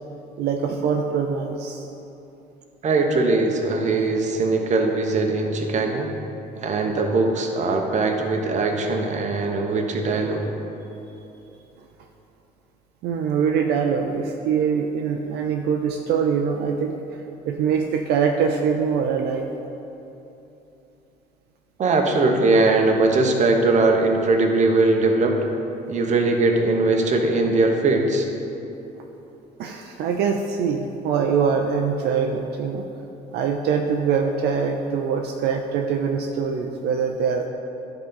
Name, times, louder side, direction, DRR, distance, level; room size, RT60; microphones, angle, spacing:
voice 1, 0.4-1.8 13.0-16.9 17.5-19.5 29.6-32.8 33.3-37.5, right 6 dB, 75° right, 3 dB, 0.5 m, -23 dB
voice 2, 2.8-6.1 6.6-10.5 21.8-25.4 25.9-28.3, right 3 dB, 45° right, 3 dB, 0.9 m, -20 dB
9.9 x 3.9 x 5.5 m, 2.9 s
cardioid pair, 110°, 17 cm